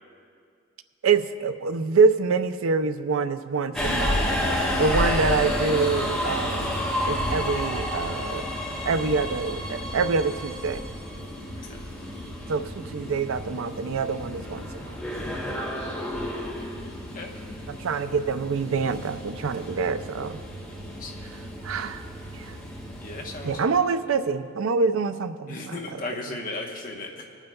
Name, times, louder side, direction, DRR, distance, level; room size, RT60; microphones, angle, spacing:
voice 1, 1.0-4.3 4.8-6.8 7.1-8.5 8.9-10.8 12.5-15.0 17.7-20.4 21.6-22.1 22.3-22.6 23.4-26.4, right 4 dB, 85° right, 11 dB, 0.4 m, -26 dB
Subway metro underground, 3.7-23.6, left 1 dB, 5° left, 1.6 m, -31 dB
voice 2, 23.0-23.8 25.5-27.3, left 2 dB, 40° left, 1 dB, 1.0 m, -36 dB
25.0 x 9.0 x 2.3 m, 2.2 s
head